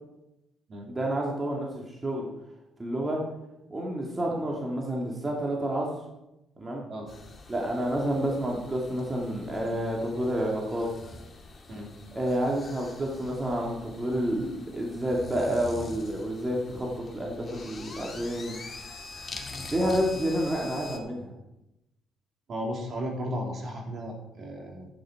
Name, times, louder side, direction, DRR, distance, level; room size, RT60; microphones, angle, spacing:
voice 1, 0.9-2.3 2.8-3.2 3.7-5.9 6.6-6.8 7.5-10.9 12.1-18.5 19.7-21.3, right 1 dB, 20° right, -2 dB, 2.5 m, -29 dB
sound 1, 7.1-21.0, left 3 dB, 35° left, 2.2 m, -44 dB
voice 2, 22.5-24.9, equal, 55° right, -1 dB, 3.8 m, -35 dB
11.5 x 9.3 x 4.7 m, 0.92 s
cardioid pair, 80°, 0 cm